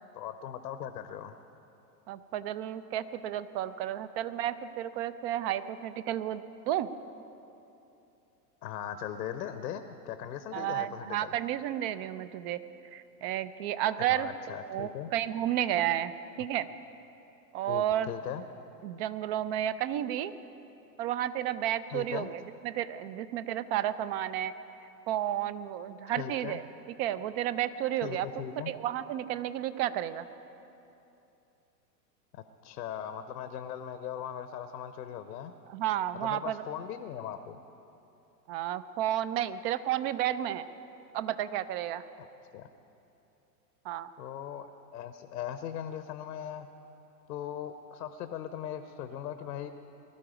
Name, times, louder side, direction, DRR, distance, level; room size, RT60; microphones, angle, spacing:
voice 1, 0.1-1.4 8.6-11.3 14.1-15.1 17.7-18.4 21.9-22.3 26.2-26.6 28.0-28.7 32.3-35.5 36.1-37.6 42.2-42.3 42.5-42.7 44.2-46.7 47.3-49.7, left 9 dB, 70° left, 9 dB, 1.0 m, -39 dB
voice 2, 2.1-6.9 10.5-12.6 12.9-16.1 16.4-16.7 17.5-18.1 18.8-20.3 21.0-24.5 25.1-26.6 27.0-28.3 28.6-30.2 35.7-36.6 38.5-40.6 41.1-42.0 43.8-44.1, right 11 dB, 35° right, 14 dB, 0.6 m, -32 dB
19.5 x 12.0 x 5.1 m, 2.9 s
hypercardioid pair, 105°, 50 cm